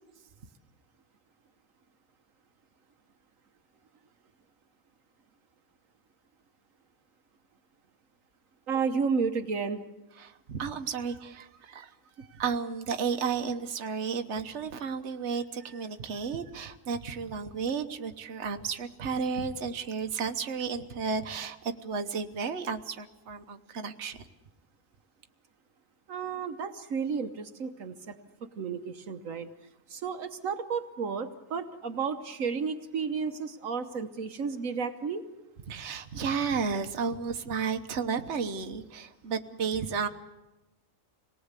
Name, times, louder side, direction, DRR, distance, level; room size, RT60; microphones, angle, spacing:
voice 1, 8.7-9.8 26.1-28.2 28.6-29.5 29.9-35.2, right 5 dB, 75° right, 8 dB, 1.4 m, -32 dB
voice 2, 10.2-11.9 12.3-24.2 35.7-40.1, right 5 dB, 60° right, 7 dB, 1.4 m, -33 dB
26.5 x 19.0 x 8.2 m, 1.0 s
omnidirectional pair, 1.4 m